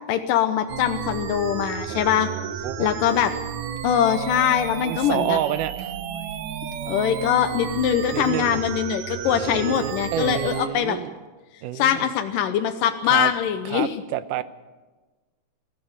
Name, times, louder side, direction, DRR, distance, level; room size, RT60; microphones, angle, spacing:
voice 1, 0.1-2.3 2.8-3.3 3.8-5.4 6.9-11.0 11.7-13.9, left 9 dB, 85° left, 7 dB, 2.6 m, -22 dB
sound 1, 0.7-10.7, right 8 dB, 65° right, 2.2 m, -32 dB
voice 2, 1.9-2.9 4.8-5.9 6.9-7.0 8.1-8.6 9.3-11.1 11.6-12.1 13.0-13.3 13.7-14.4, right 12 dB, 85° right, 14 dB, 2.4 m, -29 dB
22.0 x 14.5 x 8.8 m, 1.3 s
omnidirectional pair, 3.7 m